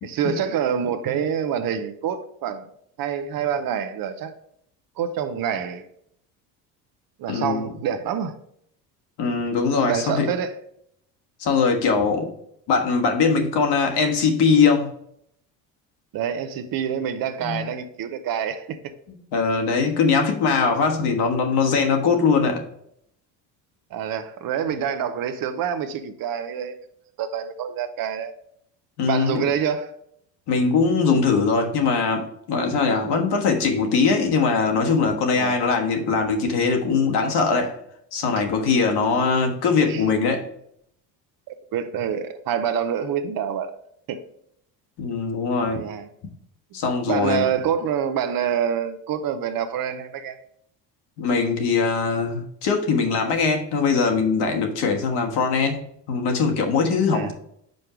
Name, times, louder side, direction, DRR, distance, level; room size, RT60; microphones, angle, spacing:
voice 1, 0.0-2.7 3.0-4.3 5.0-5.9 7.2-8.4 9.8-10.6 16.1-18.9 23.9-26.8 27.2-28.3 29.1-29.9 33.0-33.1 35.3-35.6 39.8-40.0 41.5-43.7 44.1-44.2 45.7-46.1 47.1-50.4 57.1-57.3, right 8 dB, 50° right, 0.7 m, -26 dB
voice 2, 7.3-7.7 9.2-10.3 11.4-12.3 12.7-14.9 17.4-17.7 19.1-22.6 29.0-29.4 30.5-37.8 38.1-40.5 45.0-45.8 46.7-47.5 51.2-55.8 56.1-57.4, left 5 dB, 60° left, 1.4 m, -21 dB
5.3 x 4.5 x 4.9 m
supercardioid pair, 85°, 44 cm